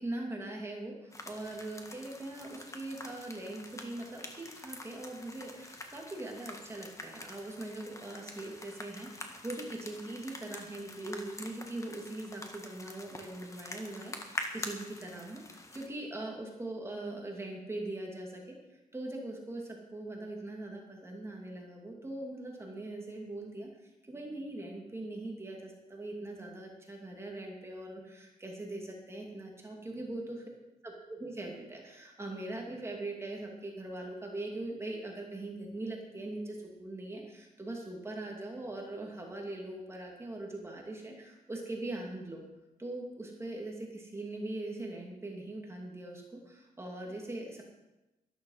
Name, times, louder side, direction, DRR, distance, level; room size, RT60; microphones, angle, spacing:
voice 1, 0.0-30.4 31.1-42.4 42.8-47.6, right 2 dB, 20° right, 0 dB, 2.4 m, -41 dB
sound 1, 1.1-15.9, left 2 dB, 20° left, 1.6 m, -46 dB
13.0 x 12.5 x 5.7 m, 1.0 s
wide cardioid pair, 155°, 14 cm